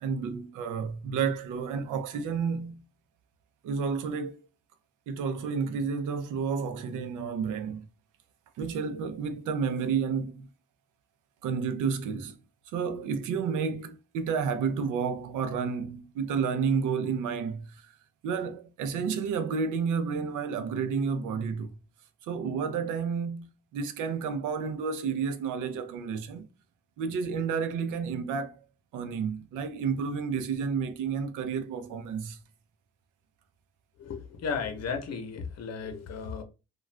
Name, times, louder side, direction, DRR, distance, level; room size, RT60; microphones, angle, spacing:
voice 1, 0.0-2.8 3.6-4.4 5.1-7.8 8.6-10.5 11.4-12.3 12.7-17.9 18.2-21.7 22.3-26.5 27.0-28.6 28.9-32.4, right 6 dB, 85° right, 0.6 m, -31 dB
voice 2, 34.0-36.4, left 5 dB, 55° left, 0.8 m, -34 dB
2.4 x 2.3 x 3.2 m
cardioid pair, 90°, 30 cm